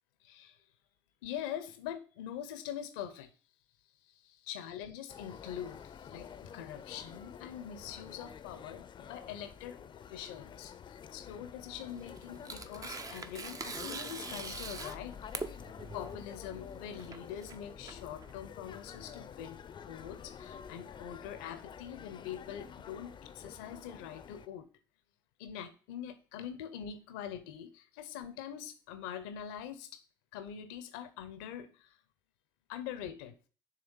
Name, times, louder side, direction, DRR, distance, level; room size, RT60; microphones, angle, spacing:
voice 1, 0.2-0.6 1.2-3.3 4.1-15.2 15.8-19.6 19.9-24.7 25.4-30.0 30.3-32.0 32.7-33.4, left 9 dB, 80° left, 10 dB, 0.8 m, -44 dB
sound 1, 5.1-24.5, left 8 dB, 45° left, 0.6 m, -49 dB
Tearing, 11.8-18.6, right 4 dB, 30° right, 0.8 m, -43 dB
6.8 x 3.4 x 6.2 m, 0.37 s
hypercardioid pair, 55°, 11 cm